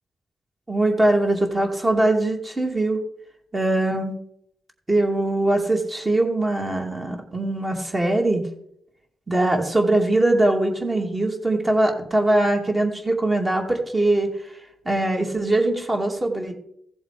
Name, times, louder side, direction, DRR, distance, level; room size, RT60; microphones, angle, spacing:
voice 1, 0.7-3.0 3.5-4.2 4.9-8.4 9.3-14.6 14.9-16.5, right 2 dB, 25° right, 2 dB, 2.4 m, -22 dB
15.5 x 7.2 x 5.0 m, 0.71 s
cardioid pair, 90°, 0 cm